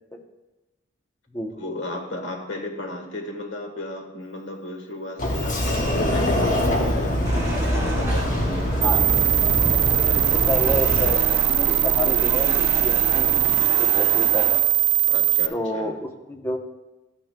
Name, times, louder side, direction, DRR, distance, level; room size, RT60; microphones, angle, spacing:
voice 1, 1.6-9.4 10.0-10.3 15.1-15.9, left 1 dB, 75° left, 3 dB, 1.4 m, -35 dB
Sliding door, 5.2-11.1, left 1 dB, 45° left, 1.2 m, -24 dB
sound 1, 7.2-14.6, right 1 dB, 15° right, 1.5 m, -32 dB
sound 2, 8.8-15.5, right 15 dB, 60° right, 0.5 m, -20 dB
voice 2, 10.1-11.2 11.5-14.7 15.5-16.6, left 1 dB, 15° left, 3 dB, 0.8 m, -29 dB
13.0 x 9.1 x 2.2 m, 1.1 s
head